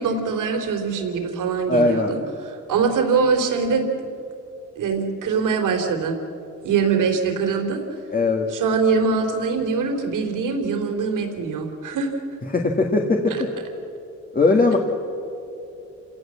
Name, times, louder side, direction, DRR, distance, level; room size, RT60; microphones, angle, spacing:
voice 1, 0.0-3.9 4.8-6.2 6.6-7.8 8.5-12.1 13.3-13.4, right 5 dB, 70° right, 4 dB, 3.5 m, -23 dB
voice 2, 1.7-2.1 8.1-8.5 12.5-13.5 14.3-14.8, left 3 dB, 25° left, 1 dB, 1.9 m, -19 dB
27.5 x 17.5 x 7.5 m, 2.8 s
cardioid pair, 115°, 32 cm